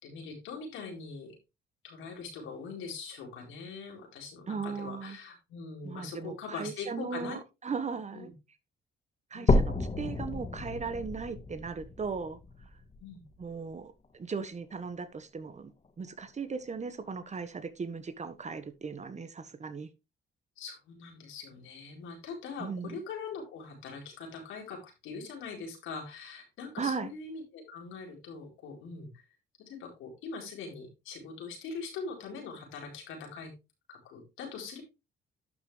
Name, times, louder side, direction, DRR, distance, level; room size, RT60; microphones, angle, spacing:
voice 1, 0.0-1.3 1.8-7.4 8.1-8.3 9.3-9.6 13.0-13.2 20.6-29.2 29.6-33.5 33.9-34.8, left 4 dB, 90° left, 4.4 m, -42 dB
voice 2, 4.5-5.2 5.8-8.3 9.3-12.4 13.4-15.7 16.0-19.9 22.6-23.0 26.8-27.1, right 5 dB, 35° right, 1.5 m, -37 dB
sound 1, 9.5-13.5 14.0-14.1 14.7-14.8 15.1-15.2 16.1-16.2, left 2 dB, 35° left, 1.6 m, -30 dB
11.5 x 6.1 x 3.4 m
cardioid pair, 90°, 20 cm